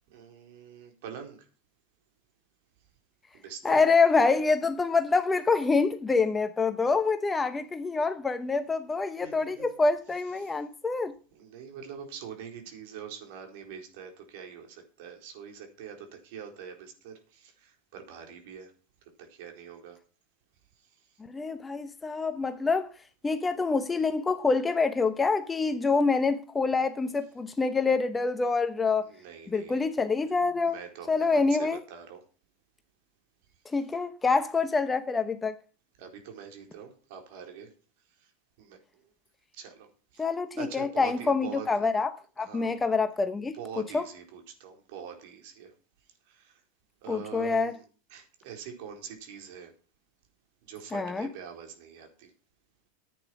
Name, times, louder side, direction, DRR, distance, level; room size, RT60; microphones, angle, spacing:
voice 1, 0.1-1.5 3.3-3.8 9.2-9.8 10.4-10.6 11.3-18.7 19.0-20.0 20.8-21.2 29.0-29.9 30.6-32.2 36.0-37.7 38.1-38.3 38.6-39.1 39.5-40.2 40.6-41.9 42.4-42.8 43.5-45.7 46.3-46.6 47.0-47.8 48.1-49.7 50.6-52.3, right 7 dB, 65° right, 4.3 m, -44 dB
voice 2, 3.6-11.1 21.3-22.9 23.2-29.1 29.5-30.8 31.1-31.8 33.7-35.6 40.2-42.1 42.4-43.5 43.9-44.0 47.1-47.7 50.9-51.3, left 4 dB, 15° left, 0.9 m, -26 dB
10.5 x 9.0 x 5.9 m
hypercardioid pair, 105°, 0 cm